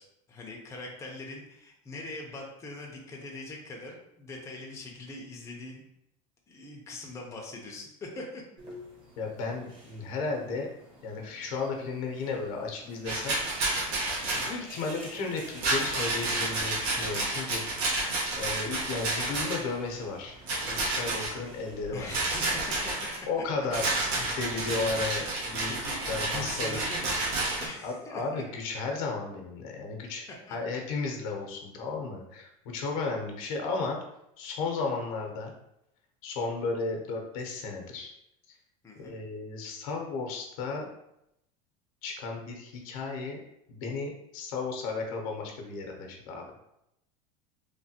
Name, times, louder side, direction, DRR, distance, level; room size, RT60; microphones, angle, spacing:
voice 1, 0.0-5.8 6.5-8.4 21.9-23.1 25.7-27.1 27.6-28.4 30.5-30.6 38.8-39.2, left 2 dB, 15° left, 0 dB, 0.5 m, -42 dB
sound 1, 8.6-22.7, equal, 30° right, 1.0 m, -49 dB
voice 2, 9.2-10.7 11.0-13.3 14.3-17.6 18.4-20.4 20.6-22.1 23.3-25.7 26.1-26.8 27.8-34.0 34.4-35.5 36.2-38.1 39.0-40.9 42.0-43.4 43.7-46.4, left 4 dB, 75° left, 2 dB, 0.7 m, -34 dB
Rattle, 13.0-14.5 15.6-19.7 20.5-21.3 22.1-23.2 23.7-27.7, right 2 dB, 75° right, 0.9 m, -30 dB
3.2 x 2.2 x 2.7 m, 0.81 s
supercardioid pair, 120°, 18 cm